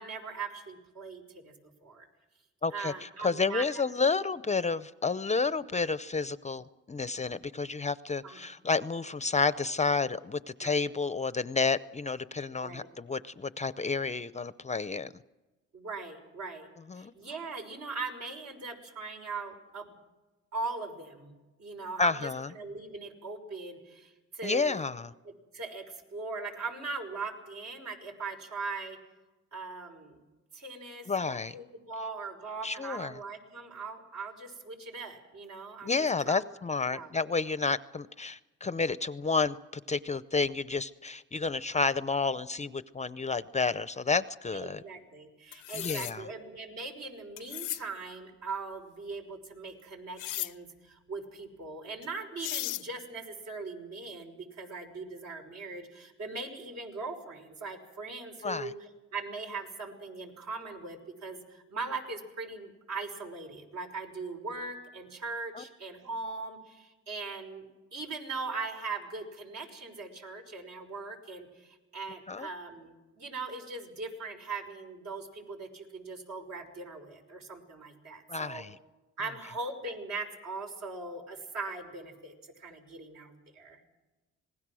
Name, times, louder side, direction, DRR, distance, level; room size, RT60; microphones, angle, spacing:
voice 1, 0.0-1.5 1.8-2.1 2.7-3.7 8.2-8.5 10.6-10.8 12.6-12.9 15.7-16.7 17.0-20.0 20.5-21.3 21.6-22.2 22.6-24.8 25.5-29.0 29.5-30.2 30.5-35.9 36.3-36.4 36.9-37.1 44.5-58.7 59.1-67.7 67.9-78.6 79.2-83.8, right 3 dB, 65° right, 2 dB, 5.9 m, -40 dB
voice 2, 2.6-15.1 16.9-17.1 22.0-22.5 24.4-25.1 31.1-31.5 32.6-33.2 35.8-44.8 45.7-46.3 58.4-58.7 65.5-65.6 72.3-72.5 78.3-78.8, left 4 dB, 25° left, 15 dB, 0.6 m, -30 dB
sound 1, 45.5-46.1 47.4-47.8 50.2-50.5 52.0-52.1 52.4-52.8, left 16 dB, 85° left, 0.6 m, -35 dB
26.5 x 20.0 x 6.3 m, 1.1 s
cardioid pair, 90°, 30 cm